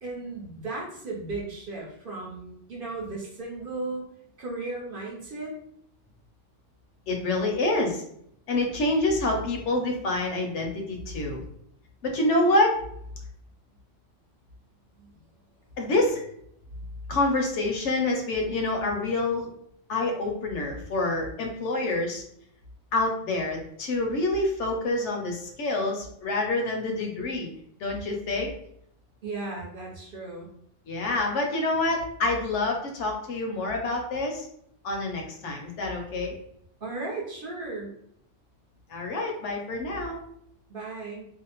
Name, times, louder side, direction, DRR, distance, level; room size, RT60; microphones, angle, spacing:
voice 1, 0.0-4.1 4.4-5.5 15.0-15.2 29.2-30.5 36.8-37.9 40.7-41.3, right 3 dB, 55° right, -4 dB, 0.8 m, -35 dB
voice 2, 7.1-8.0 8.5-11.4 12.0-12.8 15.8-16.2 17.1-19.5 19.9-22.2 22.9-27.5 27.8-28.5 30.9-34.5 34.8-36.4 38.9-40.2, left 2 dB, 75° left, 1 dB, 0.9 m, -27 dB
2.6 x 2.0 x 2.8 m, 0.69 s
omnidirectional pair, 1.3 m